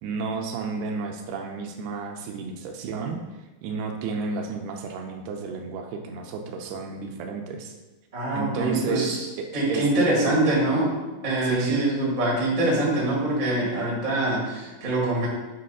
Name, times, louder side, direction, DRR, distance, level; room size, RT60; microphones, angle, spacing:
voice 1, 0.0-3.2 3.6-7.8 8.3-9.8 10.2-10.4 11.4-11.8, right 5 dB, 80° right, 3 dB, 2.5 m, -32 dB
voice 2, 8.1-9.2 9.5-10.9 11.2-15.3, right 2 dB, 55° right, -5 dB, 0.5 m, -24 dB
8.6 x 3.1 x 5.5 m, 1.1 s
omnidirectional pair, 4.8 m